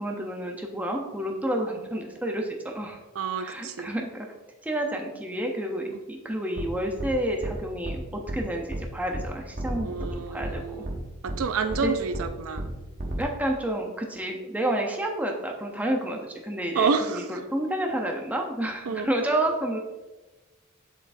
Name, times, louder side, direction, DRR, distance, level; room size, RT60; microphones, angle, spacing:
voice 1, 0.0-3.0 3.4-4.3 4.6-10.8 11.8-11.9 13.2-19.8, right 1 dB, 5° right, 1 dB, 0.7 m, -30 dB
voice 2, 3.2-3.9 9.8-10.9 11.2-12.6 16.7-17.4 18.9-19.1, right 5 dB, 70° right, 9 dB, 0.4 m, -28 dB
sound 1, 6.6-6.7 7.0-7.1 7.4-7.6 7.8-8.0 8.3-8.4 8.7-8.8 9.1-9.3 9.6-10.1 10.4-10.5 10.8-11.0 11.3-11.4 11.7-11.8 12.1-12.3 12.6-12.7 13.0-13.2, right 1 dB, 40° right, 0.9 m, -32 dB
7.4 x 5.7 x 2.6 m, 1.2 s
head